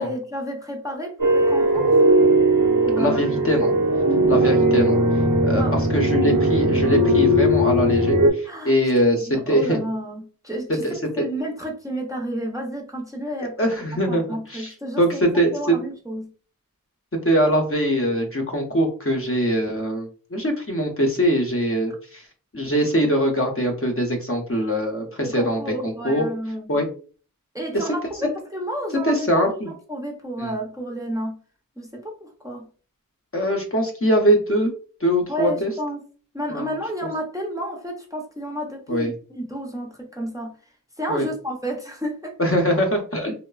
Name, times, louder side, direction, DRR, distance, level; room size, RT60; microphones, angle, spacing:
voice 1, 0.0-2.0 2.8-3.2 4.3-5.0 5.5-6.4 8.4-8.8 9.2-10.9 11.2-13.6 14.1-16.3 25.2-26.8 27.5-31.4 31.8-32.7 35.3-36.0 36.3-40.5 41.0-42.4, equal, 10° right, 0 dB, 0.6 m, -31 dB
sound 1, 1.2-8.3, right 1 dB, 70° right, 0.7 m, -18 dB
voice 2, 3.0-3.7 4.3-5.0 5.4-5.6 5.9-9.8 10.8-11.2 13.4-14.2 14.5-15.8 17.2-22.2 22.5-26.3 26.7-26.9 27.7-27.8 29.0-29.7 30.4-30.5 33.3-34.7 35.0-35.7 36.5-36.7 38.9-39.1 41.1-41.3 42.4-43.3, equal, 40° left, 2 dB, 0.6 m, -22 dB
3.0 x 2.0 x 2.3 m, 0.40 s
wide cardioid pair, 45°, 34 cm